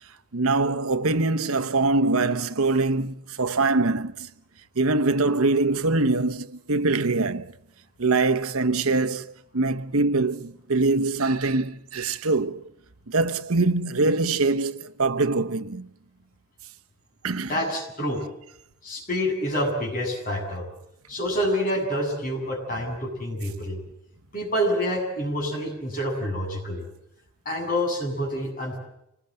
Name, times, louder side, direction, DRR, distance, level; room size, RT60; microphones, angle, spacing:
voice 1, 0.3-4.3 4.8-7.5 8.0-12.7 13.1-15.9 17.2-17.5, right 3 dB, 75° right, 1.0 m, -23 dB
voice 2, 17.5-18.2 18.8-20.6 21.1-23.8 24.3-26.9 27.4-28.8, equal, 40° left, 7.8 m, -27 dB
27.0 x 19.5 x 7.9 m
head